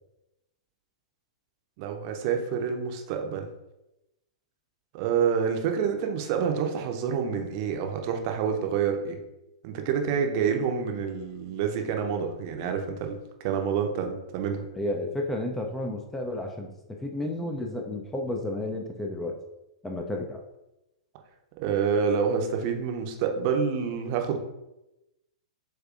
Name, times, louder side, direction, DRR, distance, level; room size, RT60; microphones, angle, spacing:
voice 1, 1.8-3.5 4.9-9.2 9.6-14.7 21.6-24.4, right 6 dB, 40° right, 4 dB, 0.7 m, -28 dB
voice 2, 14.8-19.4 19.8-20.4, left 1 dB, 5° left, 1 dB, 0.4 m, -32 dB
7.3 x 2.7 x 2.5 m, 0.94 s
figure-of-eight pair, 105°, 3 cm